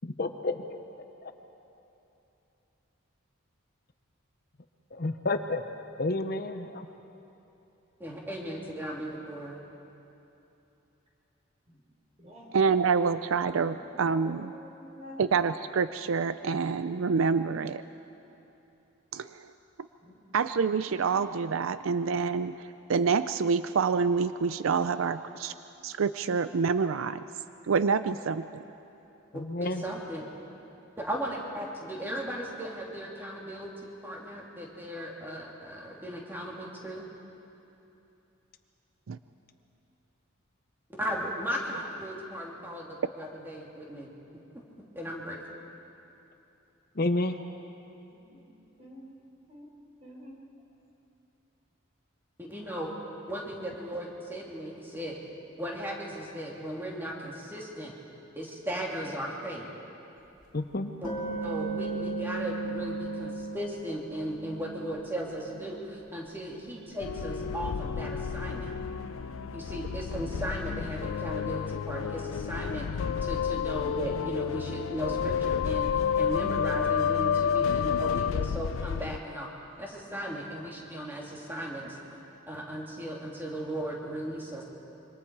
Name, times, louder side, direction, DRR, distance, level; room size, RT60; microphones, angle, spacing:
voice 1, 0.2-0.5 4.9-5.6 6.0-6.9 29.3-29.8 47.0-47.4 60.5-60.9, left 2 dB, 45° left, 7 dB, 0.8 m, -29 dB
voice 2, 8.0-9.6 29.6-30.2 31.0-37.0 41.0-44.1 44.5-44.6 44.9-45.4 52.4-52.9 53.3-55.2 55.6-57.9 58.4-59.7 61.0-61.1 61.4-68.7 69.5-72.9 73.2-79.5 79.8-82.2 82.5-84.6, equal, 10° right, -3 dB, 2.8 m, -36 dB
voice 3, 12.5-14.5 15.2-17.8 19.1-19.5 20.3-25.5 25.8-27.2 27.7-28.6 39.1-39.2, right 5 dB, 75° right, 12 dB, 0.4 m, -27 dB
voice 4, 13.7-15.3 20.0-20.4 48.1-48.4 48.8-49.1 49.5-49.7 50.0-50.3, left 1 dB, 30° right, -2 dB, 4.3 m, -49 dB
sound 1, 60.4-60.5 61.0-65.7 66.0-70.9, right 3 dB, 25° left, 3.2 m, -39 dB
sound 2, 67.0-79.2, left 7 dB, 75° left, 0.4 m, -30 dB
26.0 x 24.0 x 4.8 m, 2.9 s
head